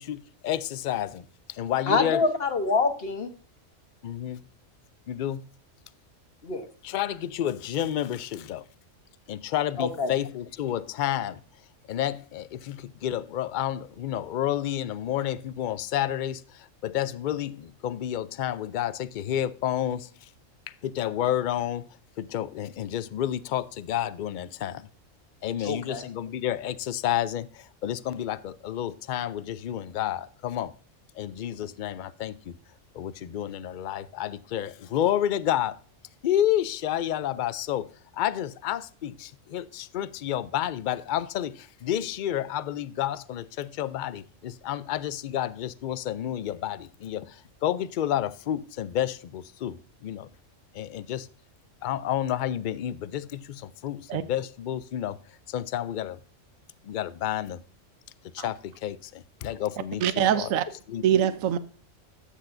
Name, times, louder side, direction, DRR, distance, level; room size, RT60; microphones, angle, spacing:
voice 1, 0.0-2.3 4.0-4.4 5.1-5.4 6.8-8.7 9.3-11.4 11.9-20.3 20.7-21.9 22.2-24.9 25.4-30.7 31.1-32.5 32.9-35.8 36.2-50.3 50.7-51.3 51.8-55.2 55.5-56.2 56.8-57.6 58.3-60.5 60.9-61.1, left 11 dB, 65° left, 0.5 m, -30 dB
voice 2, 1.9-3.3 6.4-6.7 9.8-10.1 25.6-26.0, left 4 dB, 50° left, 1.4 m, -26 dB
voice 3, 60.0-60.6 61.0-61.6, right 10 dB, 85° right, 1.1 m, -23 dB
13.0 x 8.3 x 2.6 m
omnidirectional pair, 1.4 m